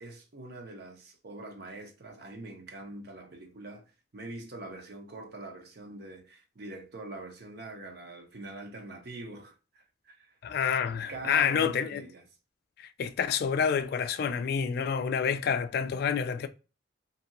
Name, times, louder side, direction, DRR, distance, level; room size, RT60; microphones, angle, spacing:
voice 1, 0.0-3.8 4.1-10.4 11.1-12.2, right 2 dB, 60° right, 0.7 m, -44 dB
voice 2, 10.4-12.1 13.0-16.5, left 7 dB, 55° left, 0.3 m, -28 dB
2.7 x 2.6 x 2.6 m
head